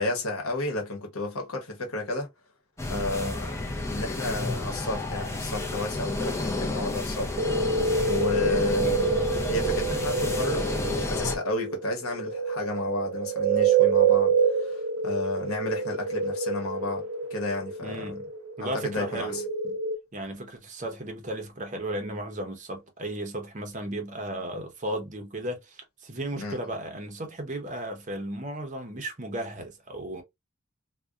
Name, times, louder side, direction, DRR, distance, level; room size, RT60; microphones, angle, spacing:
voice 1, 0.0-2.3 2.9-9.2 9.5-17.0 17.3-18.2 18.6-19.4 26.4-26.6, left 2 dB, 85° left, 0.9 m, -32 dB
sound 1, 2.8-11.4, left 2 dB, 15° left, 0.4 m, -31 dB
sound 2, 7.4-20.0, right 5 dB, 85° right, 0.4 m, -27 dB
voice 2, 17.8-18.3 18.6-19.8 20.1-30.2, right 1 dB, 35° right, 0.6 m, -35 dB
2.6 x 2.1 x 2.2 m
head